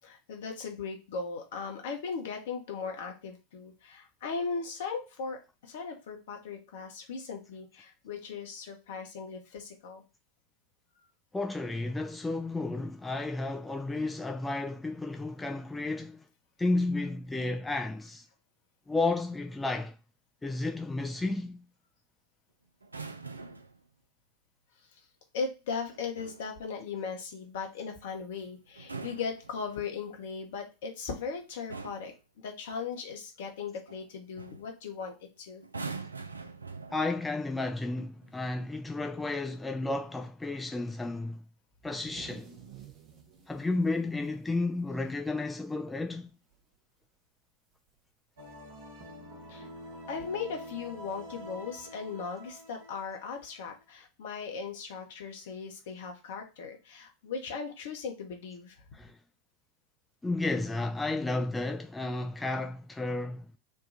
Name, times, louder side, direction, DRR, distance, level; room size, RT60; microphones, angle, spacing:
voice 1, 0.0-10.0 12.0-12.1 24.9-25.0 25.3-35.6 49.5-49.7 50.1-58.8, left 5 dB, 60° left, 0.9 m, -38 dB
voice 2, 11.3-16.2 16.6-18.3 18.9-20.0 20.4-21.6 36.9-41.4 41.8-42.5 43.5-46.3 58.9-59.2 60.2-63.5, left 2 dB, 10° left, 0.3 m, -32 dB
sound 1, 22.8-23.8 25.9-26.5 28.7-30.0 31.1-31.3 31.7-32.2 33.9-34.1 34.4-34.7 35.6-37.3 38.2-38.5, right 4 dB, 80° right, 0.3 m, -43 dB
sound 2, 41.7-45.4 45.8-45.9 46.3-46.7 47.9-48.0 49.0-49.1, right 8 dB, 35° right, 0.8 m, -53 dB
sound 3, 48.4-53.8, right 1 dB, 60° right, 1.2 m, -47 dB
3.4 x 2.3 x 4.0 m
figure-of-eight pair, 85°, 0 cm